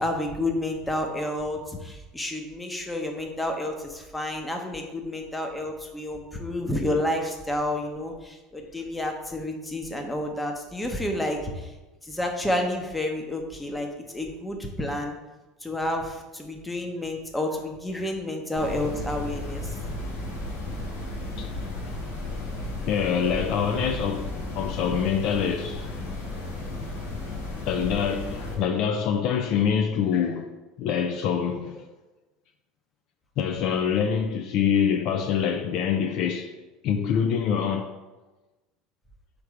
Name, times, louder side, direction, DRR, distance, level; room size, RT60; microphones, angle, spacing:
voice 1, 0.0-11.7 12.0-13.9 14.1-15.2 15.6-19.7, left 1 dB, 10° left, 0.8 m, -30 dB
sound 1, 18.5-28.6, left 2 dB, 90° left, 1.0 m, -34 dB
voice 2, 22.9-25.9 27.7-30.5 30.8-31.8 33.4-36.5 36.8-37.9, left 7 dB, 60° left, 0.3 m, -25 dB
3.4 x 3.1 x 4.8 m
hypercardioid pair, 85°, 0 cm